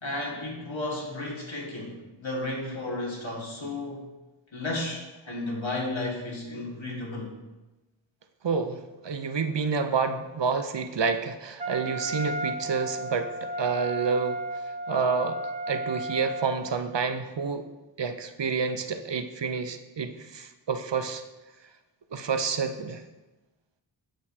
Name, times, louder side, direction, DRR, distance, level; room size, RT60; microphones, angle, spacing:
voice 1, 0.0-4.0 4.5-7.4, left 2 dB, 70° left, -4 dB, 1.9 m, -33 dB
voice 2, 8.4-14.4 14.9-15.4 15.7-17.7 18.0-21.2 22.1-23.0, right 5 dB, 60° right, 8 dB, 0.6 m, -29 dB
Wind instrument woodwind instrument, 11.6-16.9, right 1 dB, 15° right, 0.6 m, -34 dB
7.8 x 6.3 x 2.7 m, 1.1 s
wide cardioid pair, 50°, 48 cm